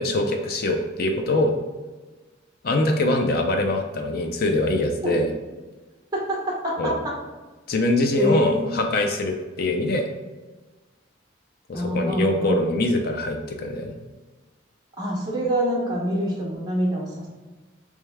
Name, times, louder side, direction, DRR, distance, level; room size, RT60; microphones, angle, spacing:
voice 1, 0.0-1.5 2.6-5.3 6.8-6.9 7.7-10.1 11.7-13.9, left 1 dB, 50° left, 4 dB, 0.5 m, -23 dB
voice 2, 6.1-7.1 8.2-8.8 11.7-12.6 15.0-17.3, equal, 20° right, -4 dB, 0.9 m, -25 dB
3.3 x 3.2 x 3.4 m, 1.2 s
head